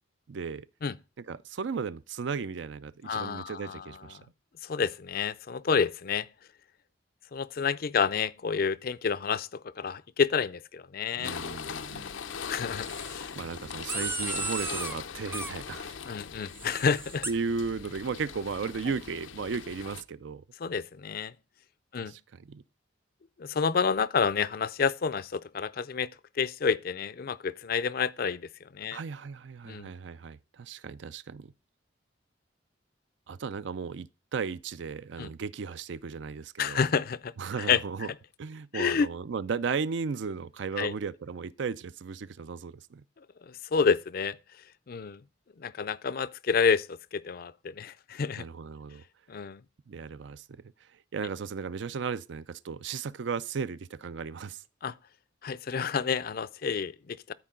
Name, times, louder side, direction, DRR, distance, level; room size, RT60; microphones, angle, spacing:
voice 1, 0.3-0.7 1.2-4.2 11.2-12.0 13.3-16.0 17.3-20.4 22.1-22.6 28.9-31.5 33.3-36.8 37.4-38.1 38.4-43.0 48.4-49.0 49.9-50.4 51.1-54.6, right 5 dB, 70° right, 0.4 m, -35 dB
voice 2, 3.0-4.0 4.6-6.3 7.3-11.4 11.9-12.2 12.5-13.3 16.1-17.3 20.6-21.3 21.9-22.1 23.4-26.1 26.4-29.0 29.7-29.9 35.2-35.3 36.6-37.3 37.6-37.8 38.7-39.1 40.8-40.9 43.4-44.4 44.9-45.2 45.6-48.4 49.3-49.6 54.8-54.9 55.4-57.3, left 6 dB, 50° left, 0.4 m, -29 dB
sound 1, 11.2-20.0, left 6 dB, 90° left, 0.7 m, -40 dB
sound 2, 12.8-13.3 13.9-15.0 15.3-15.5 16.5-17.3, right 3 dB, 10° right, 0.6 m, -35 dB
13.5 x 4.6 x 3.7 m
head